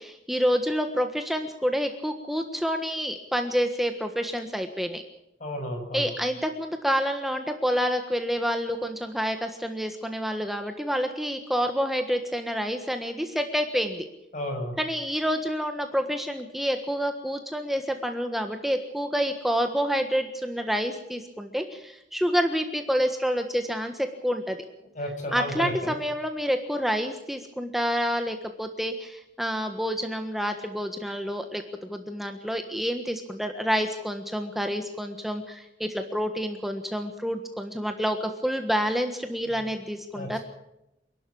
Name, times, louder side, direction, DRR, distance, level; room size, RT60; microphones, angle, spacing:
voice 1, 0.0-5.0 5.9-14.0 14.8-24.6 25.3-40.4, equal, ahead, 5 dB, 1.4 m, -28 dB
voice 2, 5.4-6.1 14.3-14.7 25.0-25.9 39.5-39.6 40.1-40.4, left 1 dB, 45° left, 3 dB, 7.2 m, -32 dB
28.5 x 12.0 x 8.6 m, 0.87 s
head